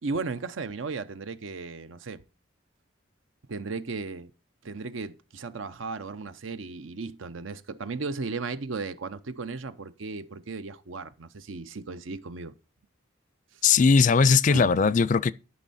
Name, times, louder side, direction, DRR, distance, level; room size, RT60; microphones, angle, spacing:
voice 1, 0.0-2.2 3.5-4.3 4.6-12.5 14.4-14.7, right 4 dB, 90° right, 0.7 m, -35 dB
voice 2, 13.6-15.3, left 5 dB, 40° left, 0.4 m, -19 dB
12.5 x 5.4 x 4.2 m
head